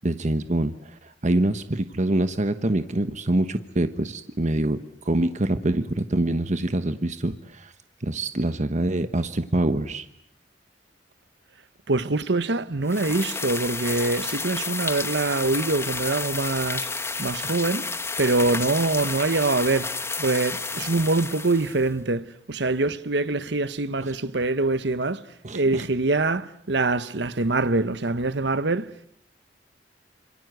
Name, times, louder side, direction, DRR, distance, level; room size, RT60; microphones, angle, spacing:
voice 1, 0.0-7.7 8.0-10.0 24.0-24.1 25.4-25.8, right 1 dB, 40° right, 1.2 m, -25 dB
voice 2, 11.9-16.9 17.2-17.9 18.2-19.9 20.2-25.2 25.5-28.9, right 3 dB, 70° right, 1.1 m, -24 dB
sound 1, 12.9-21.9, left 4 dB, 15° left, 1.3 m, -31 dB
28.0 x 26.5 x 8.0 m
head